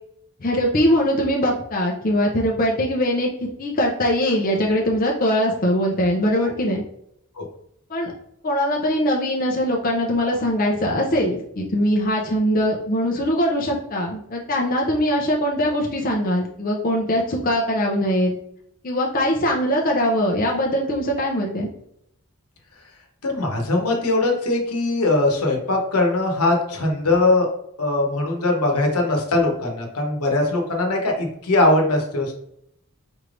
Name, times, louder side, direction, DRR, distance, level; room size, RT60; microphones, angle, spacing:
voice 1, 0.4-3.3 3.6-6.8 7.9-8.1 8.4-18.3 18.8-21.7, equal, 40° left, -1 dB, 0.6 m, -21 dB
voice 2, 23.2-27.5 27.8-32.3, left 2 dB, 85° left, 1 dB, 1.1 m, -21 dB
4.4 x 3.3 x 2.5 m, 0.74 s
head